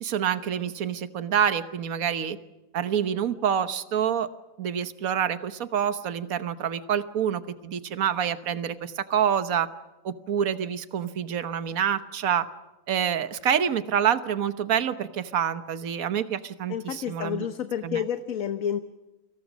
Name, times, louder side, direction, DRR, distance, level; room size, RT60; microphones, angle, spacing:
voice 1, 0.0-2.4 2.7-4.3 4.6-9.7 10.0-12.5 12.9-17.5 17.8-18.0, right 8 dB, 65° right, 11 dB, 1.5 m, -27 dB
voice 2, 16.7-18.8, left 8 dB, 65° left, 9 dB, 1.4 m, -30 dB
30.0 x 26.0 x 6.3 m, 1.0 s
omnidirectional pair, 1.6 m